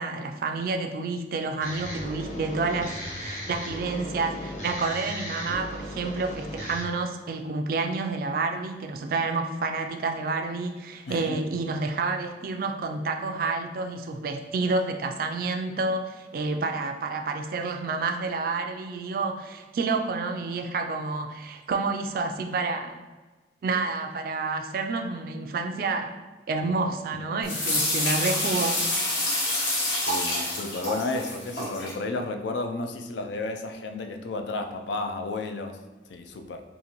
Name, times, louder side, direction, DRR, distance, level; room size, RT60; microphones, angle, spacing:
voice 1, 0.0-23.0 23.6-26.2 26.5-28.8, right 3 dB, 50° right, 6 dB, 0.3 m, -29 dB
sound 1, 1.6-6.8, equal, 40° left, 0.7 m, -36 dB
sound 2, 27.4-31.9, left 1 dB, 65° left, 1.0 m, -27 dB
voice 2, 30.1-35.8 36.1-36.6, left 3 dB, 80° left, 5 dB, 0.4 m, -32 dB
3.8 x 2.5 x 2.9 m, 1.2 s
head